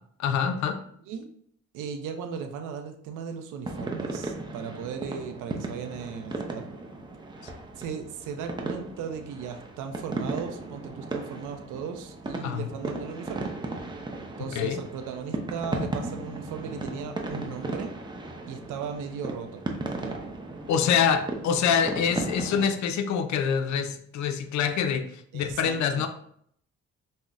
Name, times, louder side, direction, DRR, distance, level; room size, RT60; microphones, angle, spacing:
voice 1, 0.2-0.8 12.4-12.7 14.4-14.8 20.7-26.1, left 7 dB, 70° left, 8 dB, 0.5 m, -25 dB
voice 2, 1.7-6.7 7.8-13.5 14.4-17.9 18.5-19.6 19.9-20.2 25.3-26.0, right 6 dB, 85° right, 6 dB, 0.5 m, -37 dB
sound 1, 3.6-22.6, right 2 dB, 15° right, 0.5 m, -36 dB
5.3 x 2.1 x 2.4 m, 0.66 s
cardioid pair, 90°, 30 cm